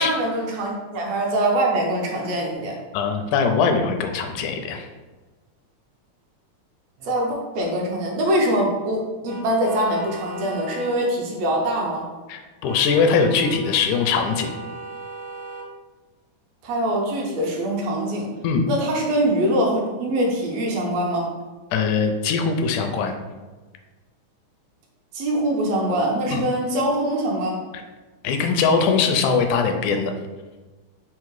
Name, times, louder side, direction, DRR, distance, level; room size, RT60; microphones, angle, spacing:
voice 1, 0.0-2.7 7.0-12.1 16.6-18.3 18.7-21.3 25.1-27.6, right 1 dB, 75° right, -1 dB, 1.6 m, -23 dB
voice 2, 2.9-4.9 12.3-14.5 18.4-18.7 21.7-23.1 26.3-26.4 28.2-30.1, left 5 dB, 80° left, 5 dB, 1.9 m, -21 dB
sound 1, 9.3-11.0 12.7-15.7, right 2 dB, 90° right, 2.1 m, -37 dB
5.4 x 2.1 x 4.6 m, 1.3 s
omnidirectional pair, 3.6 m